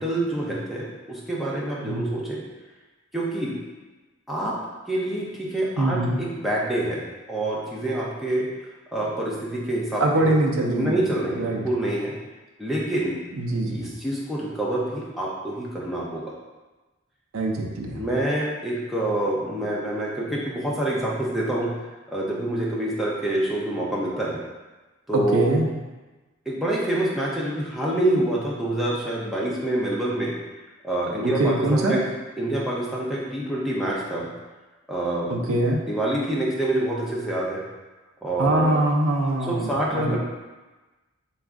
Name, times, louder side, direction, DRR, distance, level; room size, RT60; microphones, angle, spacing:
voice 1, 0.0-2.4 3.1-3.6 4.3-4.6 4.9-7.0 7.3-8.5 8.9-10.2 10.7-12.1 12.6-13.2 13.6-16.3 17.9-21.7 22.1-24.4 25.1-25.5 26.5-30.3 30.8-32.0 32.4-34.3 34.9-35.5 35.9-37.6 38.2-38.7 39.4-40.2, right 1 dB, ahead, -6 dB, 0.5 m, -26 dB
voice 2, 5.8-6.2 10.0-11.0 11.3-11.6 13.3-13.8 17.3-18.1 25.1-25.8 31.2-32.0 35.3-35.8 38.4-40.2, right 1 dB, 80° right, 0 dB, 0.6 m, -23 dB
4.1 x 2.4 x 3.5 m, 1.2 s
head